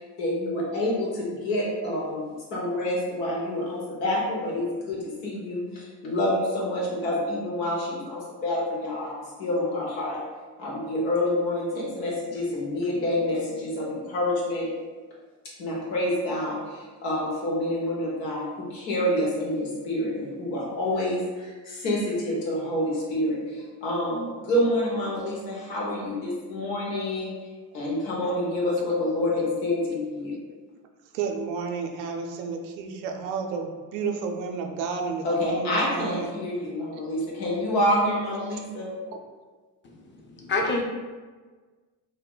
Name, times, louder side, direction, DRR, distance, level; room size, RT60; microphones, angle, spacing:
voice 1, 0.2-10.2 10.6-14.7 15.6-27.3 27.7-30.3 35.2-38.9, left 1 dB, 85° left, -5 dB, 0.9 m, -27 dB
voice 2, 31.1-36.3 38.5-38.6, right 5 dB, 80° right, 3 dB, 0.6 m, -31 dB
voice 3, 39.8-40.8, left 2 dB, 25° left, -1 dB, 0.6 m, -28 dB
2.1 x 2.1 x 3.7 m, 1.4 s
hypercardioid pair, 60°, 50 cm